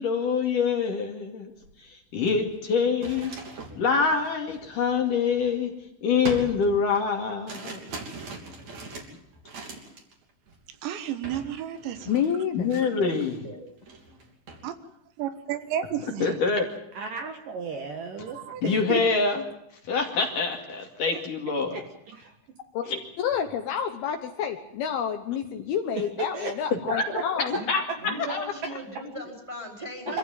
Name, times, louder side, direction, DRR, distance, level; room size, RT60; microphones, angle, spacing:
voice 1, 0.0-1.5 1.9-3.3 3.8-5.7 6.0-7.9 12.5-13.4 16.2-16.7 18.6-19.4 19.9-21.8 22.9-23.0 26.9-27.0 27.4-28.5, left 5 dB, 50° left, 3 dB, 3.4 m, -25 dB
sound 1, 1.6-1.7 2.1-5.7 6.2-10.1 10.5-10.8 11.2-11.5 11.7-13.4 13.8-14.6, right 3 dB, 40° right, 3.9 m, -41 dB
voice 2, 10.8-12.2 14.6-14.7 15.2-16.3 18.4-18.6, right 10 dB, 75° right, 10 dB, 3.5 m, -32 dB
voice 3, 12.1-12.7 22.7-22.9 23.2-27.6, left 8 dB, 70° left, 7 dB, 2.7 m, -29 dB
voice 4, 13.1-13.7 27.0-27.2 27.5-27.7 28.0-30.2, right 1 dB, 5° right, 2 dB, 3.9 m, -39 dB
voice 5, 16.9-19.0 21.1-21.2 21.7-22.3 25.9-26.5 27.1-27.2 28.3-28.4 30.1-30.2, right 4 dB, 60° right, 4 dB, 2.8 m, -34 dB
25.5 x 15.5 x 9.0 m, 0.79 s
omnidirectional pair, 5.4 m